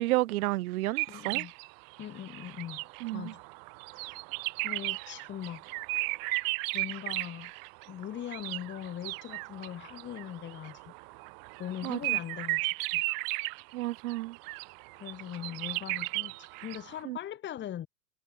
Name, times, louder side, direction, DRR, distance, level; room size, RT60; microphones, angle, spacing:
voice 1, 0.0-1.5 3.0-3.3 11.8-12.0 13.7-14.4 17.1-17.2, right 18 dB, 60° right, 1.9 m, -31 dB
sound 1, 1.0-17.0, right 34 dB, 40° right, 2.2 m, -36 dB
voice 2, 1.1-1.5 2.0-2.8 3.1-3.4 3.9-4.2 4.6-5.6 6.7-7.5 7.9-10.9 11.6-13.0 14.9-17.9, left 11 dB, 20° left, 1.7 m, -41 dB
hypercardioid pair, 115°, 50 cm